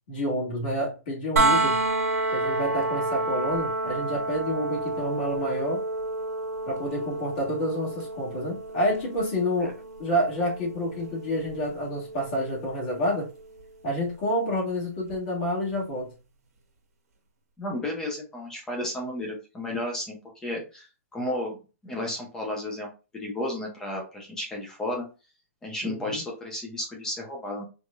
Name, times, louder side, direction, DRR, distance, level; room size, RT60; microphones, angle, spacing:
voice 1, 0.1-1.8 2.3-5.8 6.7-13.3 13.8-16.1 25.8-26.2, equal, 40° left, -4 dB, 1.9 m, -29 dB
sound 1, 1.4-13.2 15.1-15.2, right 2 dB, 85° right, 1.5 m, -30 dB
voice 2, 17.6-20.2 20.4-20.9 21.1-21.6 21.8-22.9 23.2-25.1 25.6-27.6, left 1 dB, 5° left, -1 dB, 0.7 m, -32 dB
4.7 x 2.6 x 2.3 m, 0.32 s
hypercardioid pair, 165°, 8 cm